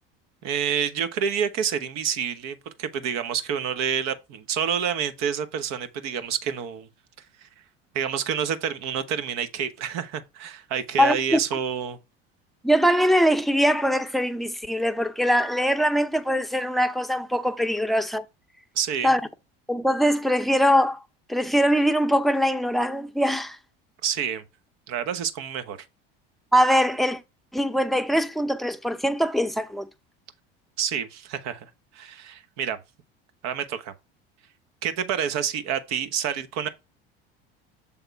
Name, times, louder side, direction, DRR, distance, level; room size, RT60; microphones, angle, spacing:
voice 1, 0.4-6.9 7.4-7.5 7.9-12.0 18.7-19.1 24.0-24.4 24.9-25.8 30.8-32.8 33.4-33.9 34.8-36.7, right 8 dB, 60° right, 1.2 m, -28 dB
voice 2, 11.0-11.4 12.6-18.2 19.0-19.2 19.7-21.0 21.3-23.6 26.5-27.2 27.5-29.9, equal, ahead, 0.7 m, -22 dB
7.1 x 3.6 x 4.6 m
hypercardioid pair, 85°, 30 cm